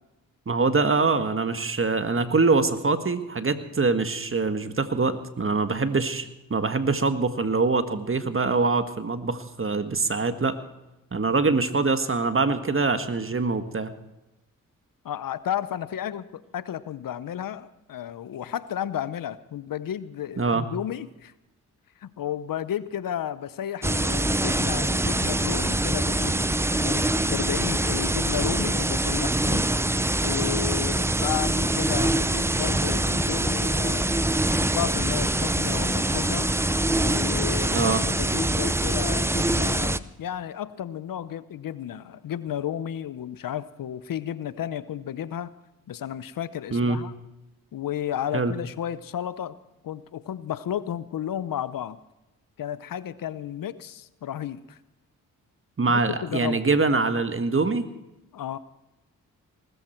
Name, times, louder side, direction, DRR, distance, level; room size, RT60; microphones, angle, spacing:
voice 1, 0.5-10.6 11.1-13.9 20.4-20.7 37.7-38.1 46.7-47.0 48.3-48.5 55.8-57.9, right 3 dB, 35° right, 10 dB, 1.6 m, -24 dB
voice 2, 15.0-21.3 22.0-26.5 26.8-29.7 30.2-34.2 34.5-36.5 37.0-45.5 45.9-47.1 47.7-49.6 49.8-52.0 52.6-54.8 55.9-56.7 58.3-58.6, left 10 dB, 70° left, 16 dB, 0.8 m, -33 dB
sound 1, 23.8-40.0, right 1 dB, 5° right, 0.6 m, -24 dB
19.5 x 14.0 x 4.5 m, 0.96 s
supercardioid pair, 50°, 35 cm